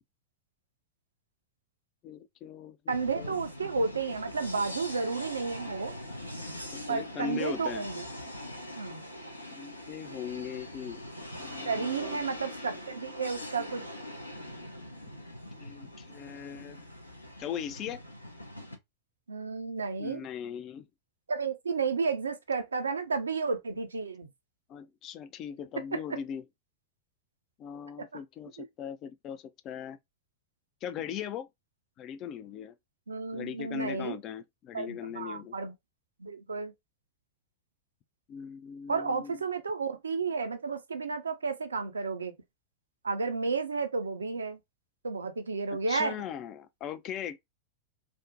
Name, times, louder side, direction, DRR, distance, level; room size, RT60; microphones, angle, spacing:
voice 1, 2.0-3.4 6.7-7.9 9.5-11.0 11.4-12.2 15.6-16.8 17.4-18.0 20.0-20.9 24.7-26.4 27.6-30.0 30.8-31.5 32.0-32.7 33.3-35.5 38.3-39.4 45.9-47.4, left 9 dB, 35° left, 0.3 m, -39 dB
sound 1, 2.9-18.8, left 1 dB, 85° left, 0.5 m, -42 dB
voice 2, 2.9-5.9 6.9-8.1 8.8-9.0 11.6-13.9 19.3-20.3 21.3-24.3 25.9-26.2 28.6-28.7 33.1-34.2 34.7-35.7 36.2-36.7 38.9-42.3 43.0-44.6 45.0-46.1, right 4 dB, 75° right, 0.4 m, -32 dB
2.5 x 2.1 x 2.6 m
figure-of-eight pair, 90°, 0 cm